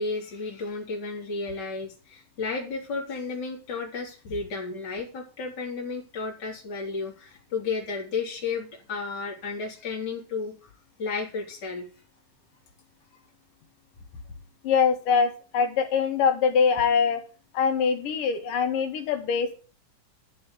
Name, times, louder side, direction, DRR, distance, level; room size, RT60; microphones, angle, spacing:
voice 1, 0.0-10.7 11.0-11.9, left 4 dB, 30° left, -2 dB, 4.3 m, -33 dB
voice 2, 14.6-17.2 17.5-19.6, left 6 dB, 75° left, 6 dB, 3.6 m, -23 dB
13.0 x 7.5 x 8.3 m, 0.36 s
omnidirectional pair, 3.8 m